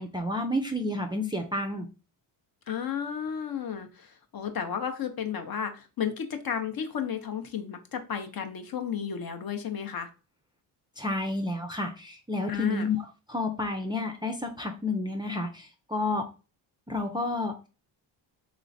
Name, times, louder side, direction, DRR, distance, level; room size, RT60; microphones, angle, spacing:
voice 1, 0.0-1.9 11.0-13.0 13.3-16.3 16.9-17.7, left 2 dB, 10° right, 2 dB, 0.4 m, -30 dB
voice 2, 2.7-10.1 12.5-12.9, left 7 dB, 45° left, 6 dB, 0.7 m, -33 dB
3.1 x 3.0 x 2.6 m, 0.34 s
supercardioid pair, 60°, 49 cm